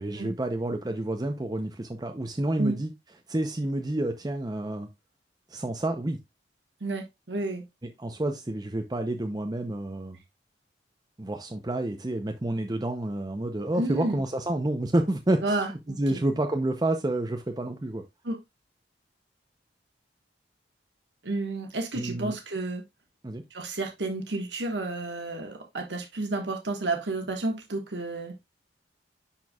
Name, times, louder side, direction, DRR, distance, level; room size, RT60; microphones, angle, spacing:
voice 1, 0.0-2.9 3.3-4.9 5.5-6.2 7.8-10.2 11.2-18.0 21.9-22.4 23.2-23.4, right 1 dB, 20° right, 0.6 m, -29 dB
voice 2, 6.8-7.6 13.8-14.2 15.4-16.2 18.2-18.4 21.2-22.8 23.5-28.4, right 2 dB, 75° right, 1.4 m, -31 dB
10.5 x 4.5 x 2.3 m
head